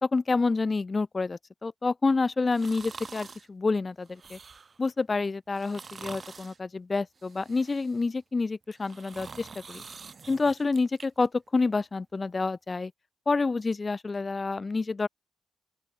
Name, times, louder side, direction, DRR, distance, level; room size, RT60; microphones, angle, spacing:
voice 1, 0.0-4.4 4.8-9.8 10.3-12.9 13.3-15.1, left 3 dB, 25° left, 3.3 m, -28 dB
sound 1, 2.5-3.5 4.1-4.8 5.5-6.6 7.2-8.1 8.6-11.1 11.5-11.6, right 5 dB, 35° right, 2.8 m, -46 dB
open air
cardioid pair, 115°, 0 cm